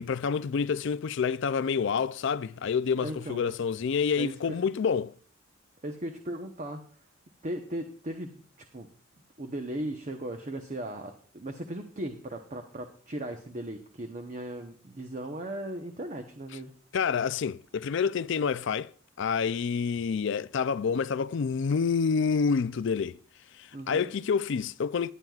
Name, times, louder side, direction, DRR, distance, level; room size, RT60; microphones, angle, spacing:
voice 1, 0.0-5.1 16.9-18.9 19.2-23.2 23.6-25.1, left 6 dB, 65° left, 0.4 m, -28 dB
voice 2, 3.0-3.5 4.1-4.6 5.8-6.8 7.4-8.9 9.4-16.7 23.7-24.1, right 1 dB, 40° right, 0.9 m, -37 dB
19.5 x 9.4 x 2.4 m
head